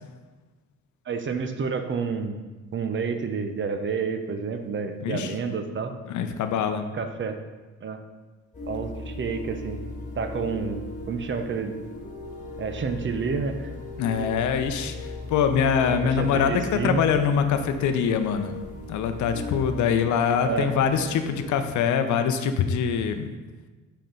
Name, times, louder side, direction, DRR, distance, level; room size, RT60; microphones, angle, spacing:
voice 1, 1.1-2.4 2.7-5.9 6.9-7.4 7.8-8.0 8.7-9.8 10.2-11.7 12.6-13.7 15.9-17.0 20.4-20.7, right 5 dB, 40° right, 8 dB, 0.6 m, -29 dB
voice 2, 5.0-5.3 6.1-6.9 14.0-14.9 15.3-18.6 18.9-23.3, left 7 dB, 75° left, 8 dB, 0.6 m, -24 dB
sound 1, 8.5-21.6, left 2 dB, 25° left, 1.7 m, -38 dB
7.4 x 4.4 x 3.8 m, 1.2 s
cardioid pair, 90°, 30 cm